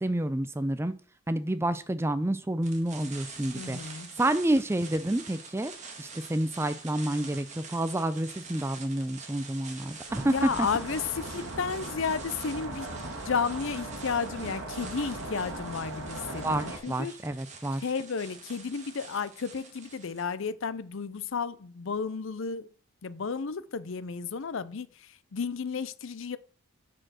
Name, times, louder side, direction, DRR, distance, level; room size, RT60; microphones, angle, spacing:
voice 1, 0.0-0.9 1.3-3.8 4.2-5.7 6.0-10.3 16.4-17.8, right 1 dB, 10° right, 0.4 m, -29 dB
sound 1, 2.6-20.3, right 5 dB, 30° right, 1.5 m, -46 dB
voice 2, 3.5-4.1 10.2-13.0 13.2-17.1 17.8-22.7 23.0-26.4, left 5 dB, 60° left, 0.5 m, -33 dB
sound 2, 10.1-16.8, right 2 dB, 55° right, 1.9 m, -38 dB
8.8 x 4.5 x 6.2 m
head